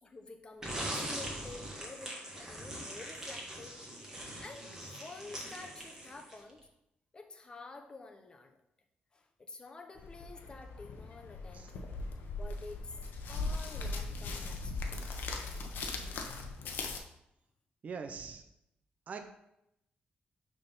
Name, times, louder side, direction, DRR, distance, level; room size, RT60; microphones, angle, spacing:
voice 1, 0.0-6.6 7.1-8.5 9.1-13.0 13.3-15.0, left 3 dB, 25° left, 5 dB, 0.9 m, -50 dB
sound 1, 0.6-6.5, right 1 dB, 15° right, 1.6 m, -41 dB
sound 2, 10.0-17.0, left 3 dB, 85° left, 0.9 m, -39 dB
voice 2, 17.8-18.4 19.1-19.3, right 5 dB, 45° right, 5 dB, 0.6 m, -42 dB
6.7 x 3.6 x 5.4 m, 0.82 s
cardioid pair, 130°, 3 cm